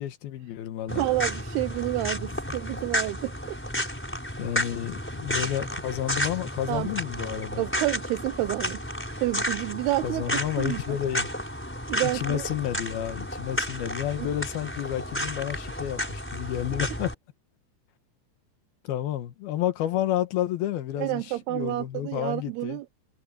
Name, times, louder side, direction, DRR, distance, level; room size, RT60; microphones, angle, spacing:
voice 1, 0.0-1.0 4.4-7.6 10.0-11.3 12.0-17.1 18.8-22.8, left 12 dB, 70° left, 3.2 m, -30 dB
sound 1, 0.9-17.1, equal, 5° left, 4.4 m, -32 dB
voice 2, 0.9-3.6 6.7-6.9 7.6-8.8 9.2-11.0 11.9-12.5 14.2-14.3 21.0-22.9, right 17 dB, 80° right, 2.8 m, -29 dB
omnidirectional pair, 4.7 m